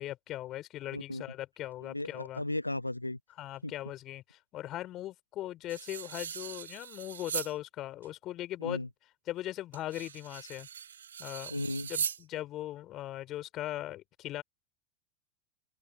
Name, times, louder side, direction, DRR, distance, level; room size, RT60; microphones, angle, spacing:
voice 1, 0.0-2.4 3.4-8.9 9.3-10.7 11.2-11.6 11.9-14.4, left 14 dB, 40° left, 4.7 m, -39 dB
voice 2, 0.9-1.2 1.8-3.2 3.6-3.7 8.6-8.9 11.5-11.9, left 1 dB, 90° left, 0.5 m, -35 dB
sound 1, 5.7-7.5 8.0-8.1 9.7-12.2, right 8 dB, 75° right, 2.4 m, -39 dB
figure-of-eight pair, 85°, 0 cm